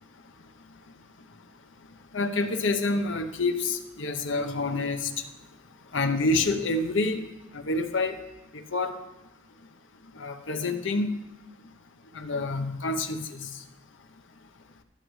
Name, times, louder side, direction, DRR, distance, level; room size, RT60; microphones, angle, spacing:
voice 1, 2.1-5.1 5.9-7.3 7.5-8.2 8.5-9.0 10.2-11.1 12.1-13.6, left 2 dB, 65° left, 7 dB, 0.7 m, -27 dB
11.5 x 9.8 x 3.1 m, 0.98 s
head